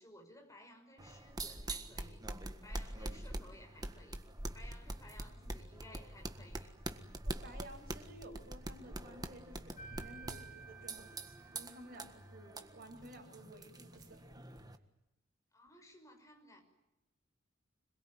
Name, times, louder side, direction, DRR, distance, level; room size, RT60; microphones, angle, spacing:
voice 1, 0.0-4.2 4.5-6.8 15.5-16.6, left 1 dB, 15° left, 4 dB, 5.9 m, -58 dB
sound 1, 1.0-14.8, right 1 dB, 20° right, 1.6 m, -45 dB
voice 2, 7.2-14.4, right 1 dB, 50° right, 2 dB, 7.4 m, -54 dB
sound 2, 9.8-12.6, right 4 dB, 40° left, 7.4 m, -54 dB
26.5 x 22.0 x 9.4 m, 0.92 s
head